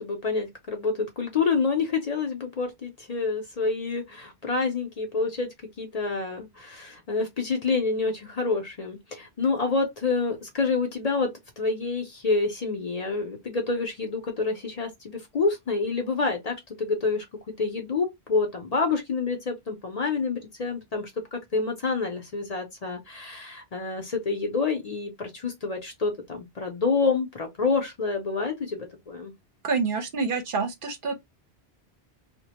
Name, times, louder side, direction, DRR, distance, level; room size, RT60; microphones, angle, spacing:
voice 1, 0.0-5.5 5.8-11.3 11.6-17.2 17.6-29.3, left 4 dB, 45° left, 0.6 m, -28 dB
voice 2, 29.6-31.2, right 4 dB, 60° right, 0.7 m, -27 dB
2.4 x 2.1 x 2.8 m
omnidirectional pair, 1.0 m